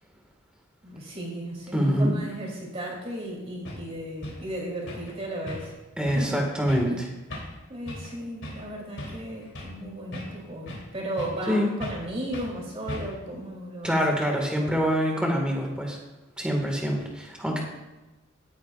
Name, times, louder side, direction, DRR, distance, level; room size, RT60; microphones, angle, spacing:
voice 1, 0.8-5.7 6.0-6.5 7.7-14.2, right 1 dB, 30° right, -3 dB, 3.7 m, -35 dB
voice 2, 1.7-2.2 6.0-7.1 11.5-11.7 13.8-16.0 16.4-17.6, equal, 5° right, 0 dB, 2.0 m, -25 dB
sound 1, 3.2-3.3 3.6-3.8 4.2-4.4 4.9-5.1 5.5-5.8 6.0-6.3 6.7-6.9 7.3-7.6 7.9-8.1 8.4-8.7 9.0-9.8 10.1-10.9 11.2-11.5 11.8-12.1 12.3-12.5 12.9-13.3, left 1 dB, 65° left, 3.5 m, -38 dB
16.5 x 9.3 x 2.6 m, 1.1 s
head